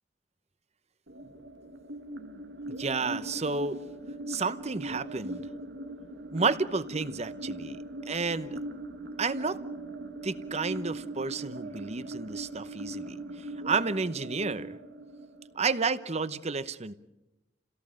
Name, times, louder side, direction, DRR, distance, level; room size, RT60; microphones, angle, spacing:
sound 1, 1.1-16.0, right 1 dB, 80° right, 1.6 m, -40 dB
voice 1, 2.8-3.8 4.3-5.4 6.3-8.6 9.2-9.6 10.2-14.8 15.5-16.9, right 4 dB, 40° right, 14 dB, 0.9 m, -31 dB
29.0 x 17.5 x 7.7 m, 0.98 s
head